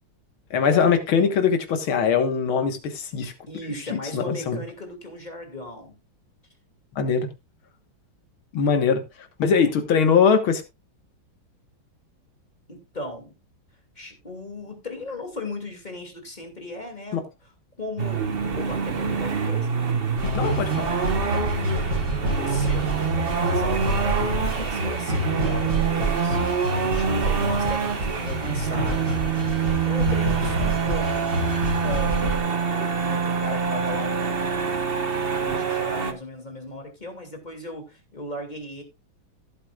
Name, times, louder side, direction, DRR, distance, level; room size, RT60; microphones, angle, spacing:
voice 1, 0.5-3.3 3.9-4.6 6.9-7.3 8.5-9.0 9.4-10.6 17.1-17.2 20.3-21.0, left 6 dB, 85° left, 2.3 m, -21 dB
voice 2, 3.5-5.9 12.7-13.4 14.0-17.2 17.8-18.3 18.6-19.7 21.3-26.4 26.7-31.4 31.8-32.4 32.9-34.2 35.4-38.8, left 1 dB, 20° left, 2.7 m, -37 dB
sound 1, 18.0-36.1, right 6 dB, 35° right, 1.1 m, -26 dB
sound 2, 20.2-32.4, right 1 dB, 65° right, 7.6 m, -27 dB
16.0 x 8.2 x 2.4 m
omnidirectional pair, 2.2 m